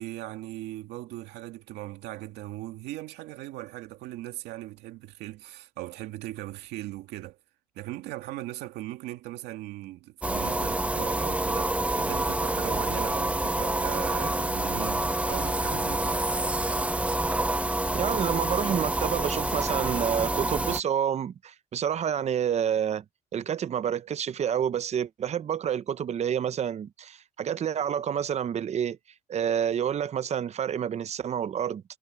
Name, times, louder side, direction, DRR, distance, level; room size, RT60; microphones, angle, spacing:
voice 1, 0.0-7.4 7.7-16.2, right 16 dB, 90° right, 2.1 m, -39 dB
sound 1, 10.2-20.8, right 2 dB, 10° right, 1.0 m, -27 dB
voice 2, 17.9-23.0 23.3-29.0 29.3-31.8, right 8 dB, 40° right, 0.7 m, -28 dB
cardioid pair, 110°, 17 cm